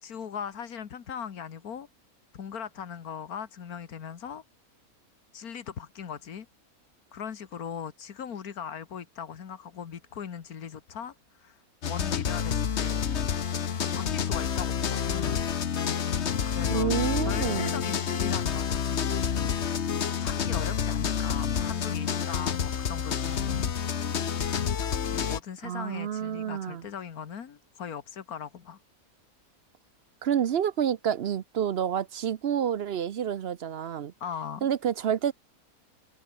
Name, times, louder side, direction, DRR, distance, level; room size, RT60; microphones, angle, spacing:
voice 1, 0.0-1.9 2.3-4.4 5.3-6.5 7.1-11.6 11.9-13.0 13.9-15.5 16.0-16.9 17.2-19.9 20.2-23.7 24.8-28.8 34.2-34.7, left 7 dB, 85° left, 1.9 m, -39 dB
sound 1, 11.8-25.4, left 7 dB, 50° left, 1.3 m, -28 dB
voice 2, 16.7-17.8 25.6-26.8 30.2-34.1 34.6-35.3, right 9 dB, 55° right, 0.8 m, -29 dB
open air
omnidirectional pair, 1.5 m